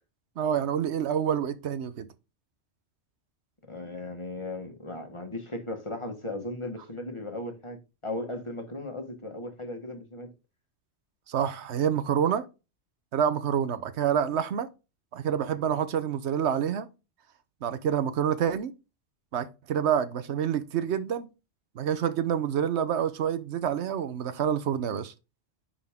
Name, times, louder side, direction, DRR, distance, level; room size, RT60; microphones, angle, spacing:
voice 1, 0.4-2.1 11.3-12.4 13.1-14.7 15.1-16.9 17.6-18.7 19.3-21.3 21.8-25.1, right 8 dB, 75° right, 1.0 m, -27 dB
voice 2, 3.7-10.3, left 2 dB, 25° left, 1.3 m, -37 dB
9.9 x 3.8 x 3.5 m
omnidirectional pair, 1.1 m